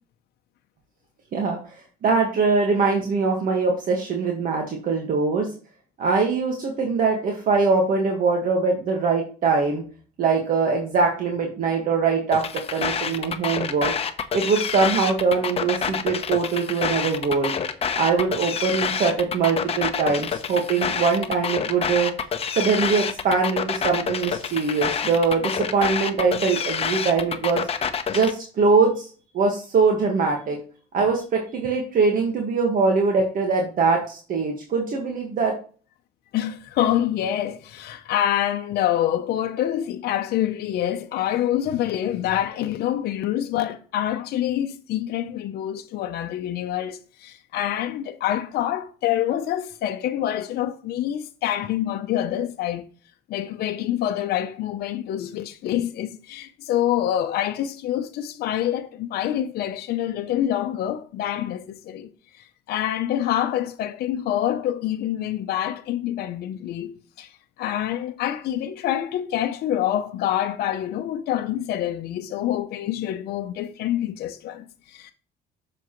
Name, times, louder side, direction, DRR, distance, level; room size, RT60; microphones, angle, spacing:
voice 1, 2.0-5.5 6.0-9.8 10.2-13.9 14.3-17.5 18.0-22.1 22.5-27.6 28.1-29.1 29.3-30.6 30.9-35.5, right 4 dB, 55° right, 1.6 m, -22 dB
sound 1, 12.3-28.3, left 7 dB, 35° left, 0.9 m, -27 dB
voice 2, 36.3-52.8 53.3-62.1 62.3-67.3 67.6-75.1, left 11 dB, 70° left, 0.7 m, -26 dB
7.2 x 6.8 x 3.1 m
cardioid pair, 110°, 17 cm